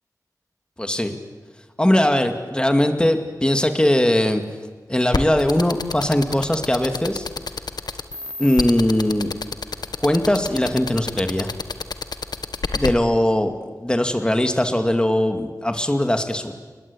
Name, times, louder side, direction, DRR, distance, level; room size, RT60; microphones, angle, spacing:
voice 1, 0.8-1.1 1.8-4.4 4.9-7.3 8.4-9.3 10.0-11.5 12.7-13.5 13.8-16.5, left 1 dB, 15° left, 6 dB, 2.3 m, -20 dB
sound 1, 5.1-12.9, left 4 dB, 85° left, 1.3 m, -27 dB
29.5 x 21.0 x 8.7 m, 1.5 s
wide cardioid pair, 90°, 7 cm